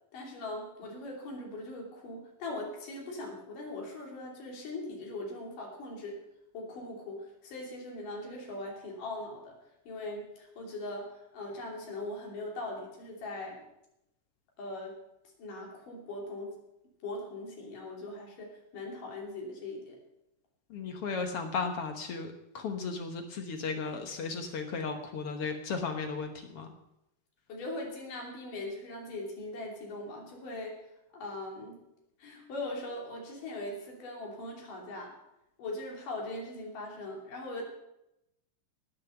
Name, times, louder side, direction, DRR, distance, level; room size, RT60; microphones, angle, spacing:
voice 1, 0.1-6.2 6.5-9.5 9.9-13.6 14.6-15.0 15.4-16.6 17.0-20.0 27.5-30.8 31.1-31.8 32.2-35.1 35.6-37.6, left 2 dB, 85° left, -1 dB, 4.5 m, -40 dB
voice 2, 20.7-26.7, left 4 dB, 60° left, 5 dB, 1.7 m, -35 dB
18.0 x 6.9 x 7.0 m, 0.87 s
omnidirectional pair, 3.7 m